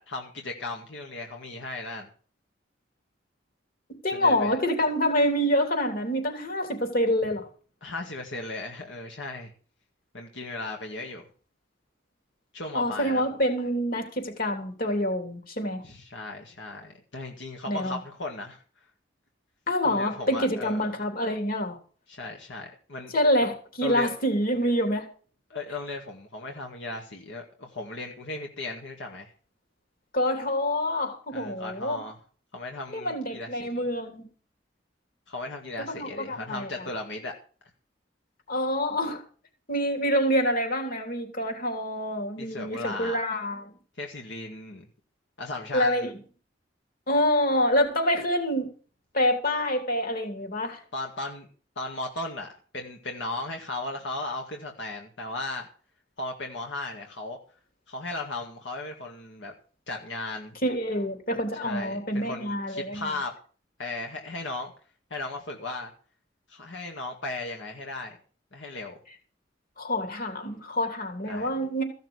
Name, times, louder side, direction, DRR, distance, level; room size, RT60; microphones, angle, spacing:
voice 1, 0.0-2.1 4.1-4.6 7.8-9.5 10.1-11.3 12.5-13.2 15.8-18.6 19.8-20.9 22.1-23.1 23.8-24.1 25.5-29.3 31.3-32.2 32.5-33.9 35.3-37.3 42.4-43.2 44.0-44.9 45.4-46.1 50.9-51.5 51.8-52.5 52.7-55.7 56.2-57.4 57.9-59.5 59.9-60.6 61.6-63.3 63.8-64.7 65.1-65.9 66.5-68.2 68.5-69.0 71.3-71.5, left 2 dB, 85° left, 2.0 m, -36 dB
voice 2, 4.0-7.5 12.7-15.8 17.7-18.0 19.7-21.8 23.1-25.0 30.1-32.0 32.9-34.3 35.8-36.9 38.5-39.2 39.7-43.7 45.7-46.1 47.1-48.7 49.1-50.8 60.6-63.1 69.8-71.8, equal, 50° left, 3.2 m, -26 dB
15.0 x 6.5 x 8.0 m
head